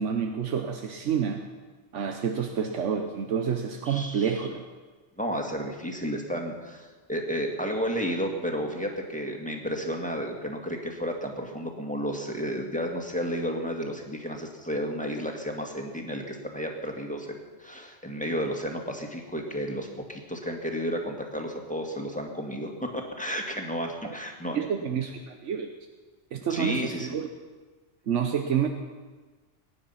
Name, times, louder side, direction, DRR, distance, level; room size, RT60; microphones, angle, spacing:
voice 1, 0.0-1.4 1.9-4.6 24.5-25.7 26.3-27.3 28.1-28.7, right 7 dB, 80° right, 5 dB, 1.2 m, -28 dB
voice 2, 3.9-4.5 5.2-24.6 26.5-27.2, equal, 5° left, 1 dB, 1.9 m, -32 dB
22.0 x 9.9 x 5.7 m, 1.3 s
omnidirectional pair, 1.2 m